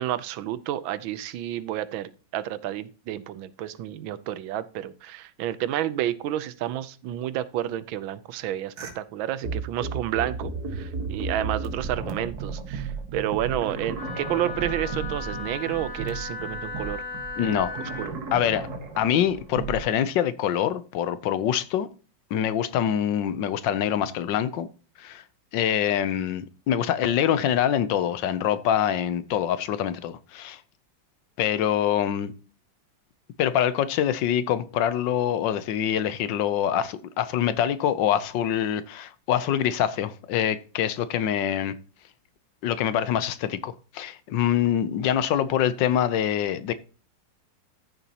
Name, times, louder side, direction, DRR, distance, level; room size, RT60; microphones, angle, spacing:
voice 1, 0.0-17.0 17.4-17.6 18.1-18.2, right 12 dB, 90° right, 1.5 m, -30 dB
sound 1, 8.8-8.9 9.4-19.8, right 4 dB, 55° right, 1.9 m, -34 dB
Wind instrument woodwind instrument, 13.9-18.1, left 5 dB, 50° left, 2.0 m, -36 dB
voice 2, 17.4-17.7 18.3-18.7 19.0-21.9 22.3-24.7 25.0-25.2 25.5-30.6 31.4-32.3 33.4-41.7 42.6-46.7, left 10 dB, 75° left, 1.4 m, -25 dB
14.0 x 6.9 x 2.9 m
omnidirectional pair, 2.1 m